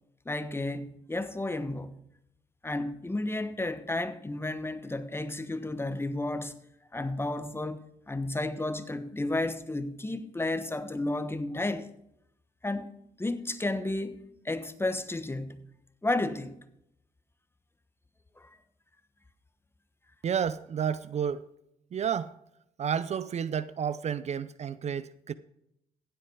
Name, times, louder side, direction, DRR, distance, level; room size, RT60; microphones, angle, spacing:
voice 1, 0.2-2.0 2.6-6.5 6.9-11.9 12.6-12.9 13.2-15.6 16.0-16.6 18.4-18.6, left 2 dB, 15° left, 1.2 m, -32 dB
voice 2, 20.2-21.4 21.9-22.3 22.8-25.3, right 8 dB, 50° right, 0.5 m, -31 dB
15.5 x 7.9 x 4.8 m
supercardioid pair, 55°, 14 cm